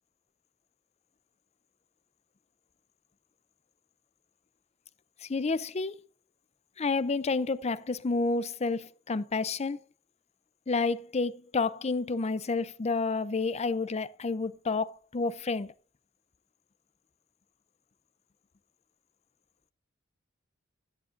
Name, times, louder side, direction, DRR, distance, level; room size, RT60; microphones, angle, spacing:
voice 1, 5.2-5.9 6.8-9.8 10.7-15.7, left 3 dB, 35° left, 0.5 m, -30 dB
13.5 x 10.5 x 2.6 m
head